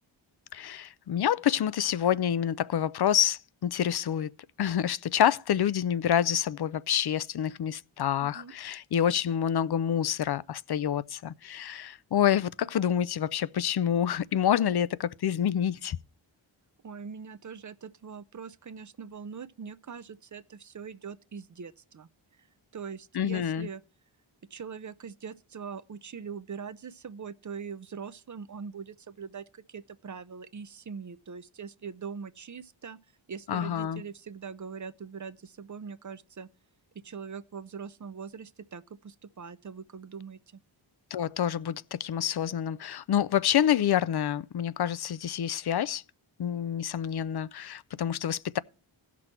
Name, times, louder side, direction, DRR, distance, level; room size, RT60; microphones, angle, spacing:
voice 1, 0.5-4.3 4.6-16.0 23.1-23.7 33.5-34.0 41.1-46.0 46.4-48.6, left 9 dB, 55° left, 0.5 m, -27 dB
voice 2, 8.2-8.5 16.8-22.1 22.7-23.8 24.5-33.0 33.3-36.5 36.9-40.4, right 6 dB, 40° right, 0.5 m, -42 dB
16.5 x 6.1 x 4.4 m
wide cardioid pair, 65°, 47 cm